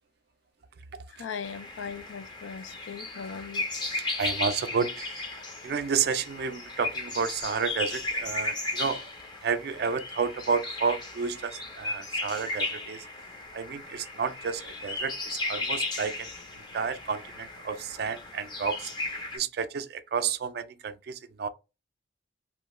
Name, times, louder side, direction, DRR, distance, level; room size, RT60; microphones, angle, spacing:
voice 1, 1.1-3.6, left 6 dB, 90° left, 0.4 m, -39 dB
sound 1, 1.4-19.4, left 2 dB, 25° left, 0.5 m, -35 dB
voice 2, 3.9-9.1 9.4-13.1 13.5-21.5, right 6 dB, 55° right, 0.3 m, -31 dB
2.8 x 2.2 x 3.0 m
head